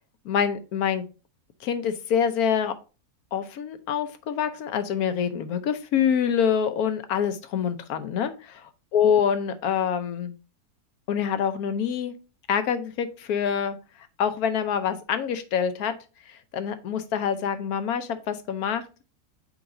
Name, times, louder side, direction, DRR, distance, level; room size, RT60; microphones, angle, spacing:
voice 1, 0.2-1.0 1.6-2.7 3.3-8.3 8.9-10.3 11.1-12.1 12.5-13.8 14.2-15.9 16.3-18.8, left 8 dB, 75° left, 10 dB, 1.2 m, -26 dB
7.8 x 4.9 x 2.6 m, 0.32 s
omnidirectional pair, 1.6 m